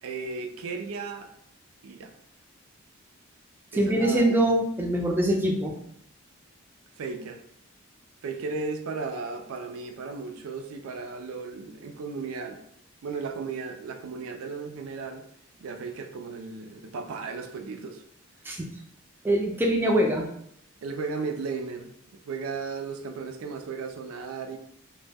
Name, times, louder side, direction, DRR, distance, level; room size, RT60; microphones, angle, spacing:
voice 1, 0.0-1.3 1.8-2.1 3.7-4.4 7.0-7.4 8.2-12.6 13.0-15.3 15.6-18.0 20.8-21.9 22.3-24.6, right 4 dB, 85° right, 5 dB, 0.4 m, -35 dB
voice 2, 3.7-5.7 18.4-18.7 19.2-20.3, right 1 dB, 10° right, 0 dB, 0.3 m, -23 dB
2.1 x 2.0 x 3.3 m, 0.69 s
head